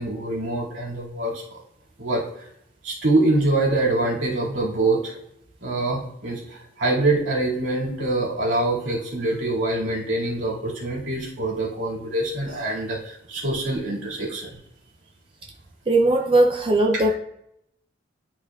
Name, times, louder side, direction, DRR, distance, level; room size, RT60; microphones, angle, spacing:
voice 1, 0.0-1.6 2.0-2.5 2.8-5.2 5.6-14.6, right 2 dB, 85° right, -5 dB, 2.3 m, -25 dB
voice 2, 15.9-17.2, right 2 dB, 30° right, 2 dB, 0.5 m, -19 dB
11.0 x 4.3 x 2.4 m, 0.76 s
head